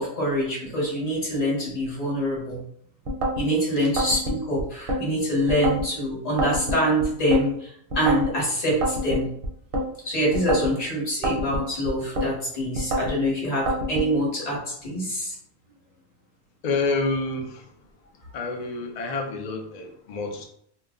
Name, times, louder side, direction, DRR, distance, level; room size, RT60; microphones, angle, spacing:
voice 1, 0.0-2.6 3.4-7.7 7.9-9.3 10.0-15.3, equal, 35° left, -4 dB, 1.0 m, -25 dB
sound 1, 3.1-3.5 4.0-5.0 5.5-5.9 6.4-7.4 7.9-8.3 8.8-9.9 10.3-10.8 11.2-12.3 12.8-13.2 13.7-14.1, equal, 55° right, 0.7 m, -26 dB
voice 2, 16.6-17.8 18.3-20.4, left 3 dB, 60° left, 2 dB, 0.4 m, -28 dB
2.3 x 2.0 x 3.5 m, 0.69 s
omnidirectional pair, 1.2 m